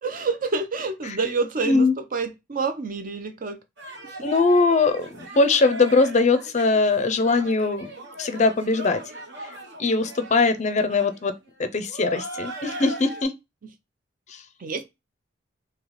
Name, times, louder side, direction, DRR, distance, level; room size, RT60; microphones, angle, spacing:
voice 1, 0.0-3.6 4.1-4.3 14.6-14.8, right 4 dB, 45° right, 0.5 m, -28 dB
voice 2, 1.6-1.9 4.2-7.9 8.2-9.0 9.8-11.3 11.6-13.3 14.3-14.4, left 3 dB, 35° left, 0.5 m, -21 dB
sound 1, 3.8-13.2, right 1 dB, 60° right, 1.0 m, -38 dB
3.2 x 2.7 x 3.9 m
head